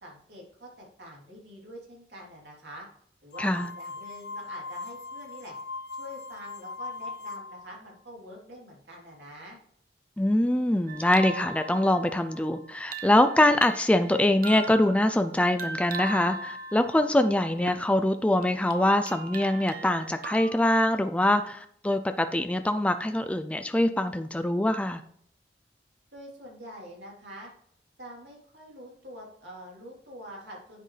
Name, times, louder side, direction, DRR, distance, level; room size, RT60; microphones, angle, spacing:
voice 1, 0.0-2.9 3.2-5.6 6.0-9.6 26.1-27.5 28.0-30.8, equal, 75° right, -2 dB, 3.4 m, -45 dB
sound 1, 3.3-7.7, left 3 dB, 65° left, 0.6 m, -39 dB
voice 2, 3.4-3.7 10.2-25.0, left 1 dB, 5° left, 8 dB, 0.4 m, -24 dB
sound 2, 10.9-17.9 18.4-20.5, right 3 dB, 55° right, 1.0 m, -39 dB
10.0 x 7.8 x 3.3 m, 0.65 s
head